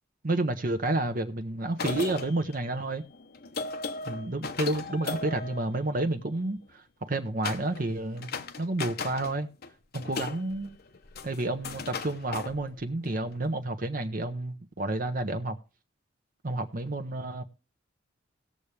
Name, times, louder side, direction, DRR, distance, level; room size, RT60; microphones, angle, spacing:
voice 1, 0.2-3.0 4.1-8.3 8.6-9.5 9.9-10.7 11.2-15.6 16.4-17.4, right 2 dB, 45° right, 0.9 m, -30 dB
sound 1, 1.7-6.4 7.4-7.9 8.2-9.4 9.6-13.2, left 4 dB, 55° left, 0.9 m, -37 dB
18.0 x 6.9 x 3.3 m
head